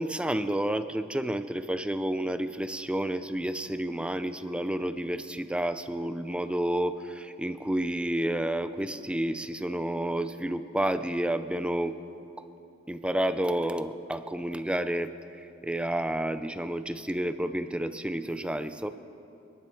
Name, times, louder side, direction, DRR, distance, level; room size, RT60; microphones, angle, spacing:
voice 1, 0.0-11.9 12.9-15.1 15.6-18.9, right 1 dB, 5° right, 11 dB, 0.5 m, -30 dB
28.0 x 10.5 x 4.6 m, 2.8 s
head